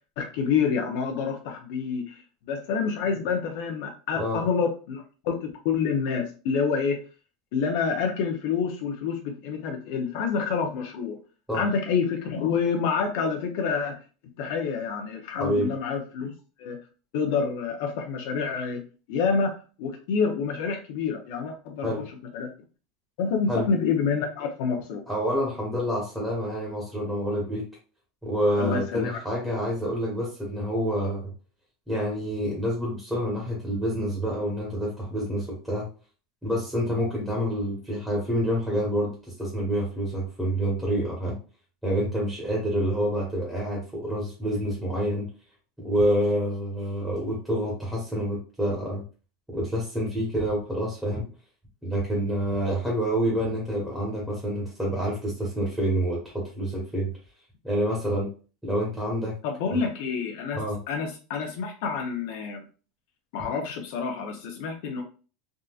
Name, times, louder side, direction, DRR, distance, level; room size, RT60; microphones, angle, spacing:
voice 1, 0.2-7.0 7.5-11.2 11.5-14.0 14.4-16.3 16.6-16.8 17.1-18.8 19.1-22.5 23.2-25.0 28.6-29.2 59.4-62.7 63.3-65.0, left 5 dB, 65° left, 2 dB, 0.6 m, -28 dB
voice 2, 15.4-15.7 21.8-22.0 23.5-23.6 25.1-27.6 28.2-31.3 31.9-35.9 36.4-39.1 39.4-41.3 41.8-45.3 45.8-49.0 49.5-51.2 51.8-57.1 57.6-58.3 58.6-59.3 59.7-59.8 60.5-60.8, equal, 5° right, -5 dB, 1.1 m, -27 dB
3.6 x 2.6 x 2.4 m, 0.36 s
supercardioid pair, 150°, 0 cm